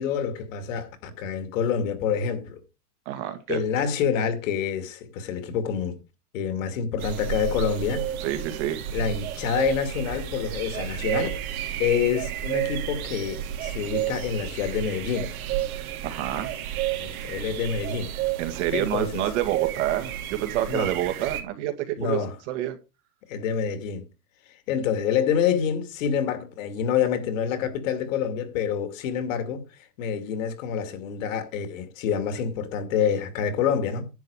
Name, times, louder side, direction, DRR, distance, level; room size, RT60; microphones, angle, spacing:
voice 1, 0.0-2.6 3.5-6.0 6.3-8.1 8.9-11.3 11.8-15.3 17.0-18.2 18.7-19.2 20.7-20.9 22.0-22.3 23.3-24.0 24.7-29.6 30.0-34.1, left 7 dB, 60° left, 2.4 m, -27 dB
voice 2, 3.1-3.6 8.2-8.8 15.7-16.5 18.4-22.2 22.5-22.8, right 13 dB, 50° right, 2.1 m, -28 dB
sound 1, 7.0-21.4, right 11 dB, 65° right, 2.8 m, -31 dB
10.5 x 8.0 x 5.0 m
supercardioid pair, 160°, 45 cm